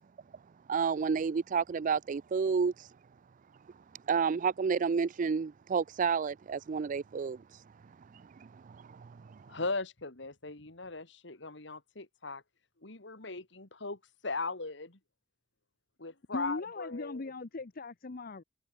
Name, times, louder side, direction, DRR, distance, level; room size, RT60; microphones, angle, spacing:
voice 1, 0.7-2.9 4.1-9.6, right 5 dB, 40° right, 0.4 m, -31 dB
voice 2, 9.5-12.4 12.8-15.0 16.0-17.2, left 3 dB, 65° left, 2.6 m, -38 dB
voice 3, 16.3-18.4, left 3 dB, 50° left, 0.7 m, -39 dB
head